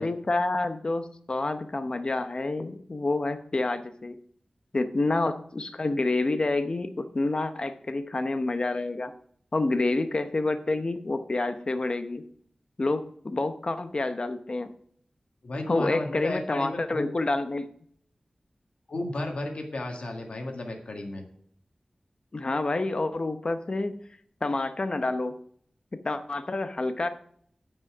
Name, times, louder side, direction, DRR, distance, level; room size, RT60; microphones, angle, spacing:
voice 1, 0.0-4.2 4.7-9.1 9.5-12.2 12.8-14.7 15.7-17.7 22.3-24.0 24.4-25.4 25.9-27.1, left 2 dB, 50° left, 9 dB, 0.8 m, -28 dB
voice 2, 15.4-17.1 18.9-21.2, left 2 dB, 70° left, 2 dB, 1.7 m, -33 dB
9.5 x 5.5 x 6.0 m, 0.62 s
wide cardioid pair, 90°, 2 cm